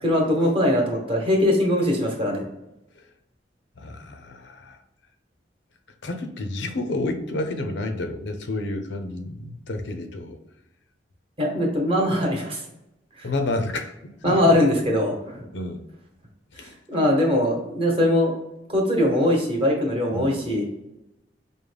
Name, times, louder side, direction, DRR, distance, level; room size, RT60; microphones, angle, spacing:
voice 1, 0.0-2.4 11.4-12.6 13.2-13.3 14.2-15.4 16.6-18.3 18.7-20.6, left 1 dB, 30° right, 0 dB, 1.0 m, -21 dB
voice 2, 3.8-4.8 6.0-10.4 13.2-14.4 15.5-15.8 16.5-16.7 20.1-20.5, left 2 dB, 90° left, 6 dB, 0.6 m, -30 dB
5.1 x 2.1 x 3.3 m, 0.90 s
head